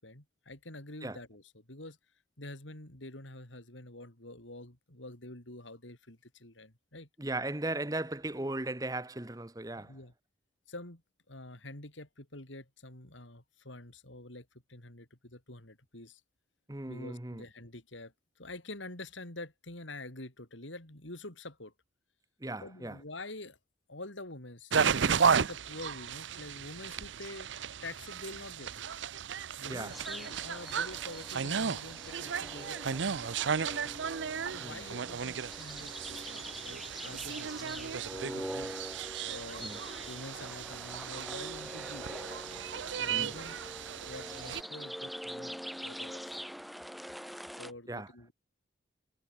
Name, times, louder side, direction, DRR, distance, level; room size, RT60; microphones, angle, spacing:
voice 1, 0.0-2.0 2.4-7.1 9.8-10.1 10.7-11.0 11.3-16.2 16.9-18.1 18.4-21.7 22.6-23.6 23.9-27.5 27.8-28.8 29.6-33.6 34.5-38.5 39.2-39.7 40.1-42.1 43.0-43.6 44.1-46.4 47.6-48.3, left 2 dB, 85° left, 4.8 m, -47 dB
voice 2, 7.2-9.9 16.7-17.4 22.4-23.0 29.7-30.0 34.6-34.8 39.6-39.8 43.1-43.3 47.9-48.1, right 2 dB, 20° right, 0.9 m, -37 dB
sound 1, 24.7-44.6, right 6 dB, 75° right, 0.6 m, -34 dB
sound 2, 29.9-47.7, equal, ahead, 0.5 m, -44 dB
head